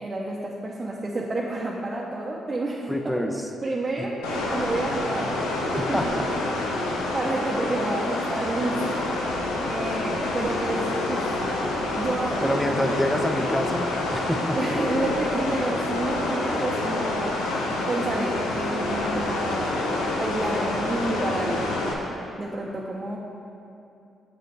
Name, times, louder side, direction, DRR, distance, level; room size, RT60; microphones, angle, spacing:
voice 1, 0.0-3.2 3.6-5.5 5.7-6.1 6.6-6.7 7.1-9.1 9.6-11.3 12.0-12.6 14.6-17.4 17.9-19.9 20.2-21.8 22.4-23.2, right 2 dB, 30° right, -4 dB, 0.8 m, -29 dB
voice 2, 2.9-3.3 5.8-6.2 6.8-7.0 12.4-14.6, left 1 dB, 5° left, 4 dB, 0.7 m, -27 dB
sound 1, 4.2-21.9, left 2 dB, 85° left, 0.8 m, -27 dB
7.7 x 6.5 x 3.3 m, 2.7 s
hypercardioid pair, 45°, 0 cm